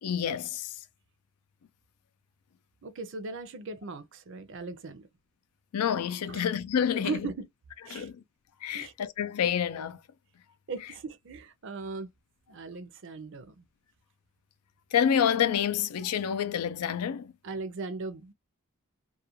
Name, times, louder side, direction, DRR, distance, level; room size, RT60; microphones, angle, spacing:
voice 1, 0.0-0.7 5.7-7.2 7.9-8.2 8.6-10.0 14.9-17.3, left 8 dB, 85° left, 0.4 m, -28 dB
voice 2, 2.8-5.1 6.3-6.4 6.9-7.5 7.9-8.1 8.7-8.9 10.7-12.1 12.5-13.6 17.4-18.3, right 4 dB, 55° right, 0.5 m, -38 dB
2.4 x 2.2 x 2.8 m
head